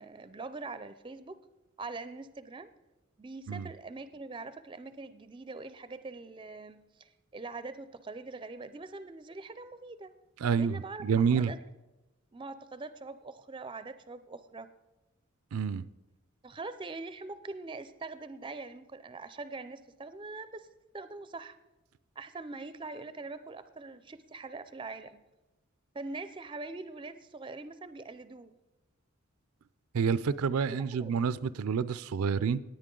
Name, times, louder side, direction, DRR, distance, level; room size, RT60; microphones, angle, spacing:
voice 1, 0.0-1.4 1.8-2.7 3.2-10.1 10.6-11.0 11.4-11.6 12.3-14.7 16.4-20.7 20.9-21.6 22.2-25.2 25.9-28.5 30.9-31.2, right 3 dB, 25° right, 13 dB, 0.4 m, -43 dB
voice 2, 10.4-11.5 15.5-15.8 29.9-32.6, right 6 dB, 90° right, 16 dB, 0.4 m, -28 dB
18.5 x 9.1 x 3.8 m, 1.1 s
head